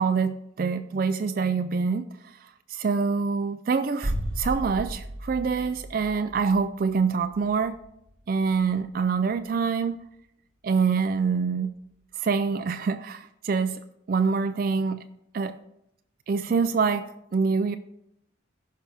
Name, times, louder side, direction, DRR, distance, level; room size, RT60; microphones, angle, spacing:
voice 1, 0.0-7.8 8.3-10.0 10.6-11.7 12.2-13.8 14.1-15.0 15.3-15.6 16.3-17.8, right 5 dB, 45° right, 10 dB, 0.3 m, -25 dB
sound 1, 4.0-9.8 10.0-10.1, right 1 dB, 80° right, 1.0 m, -36 dB
15.5 x 5.6 x 3.4 m, 0.79 s
head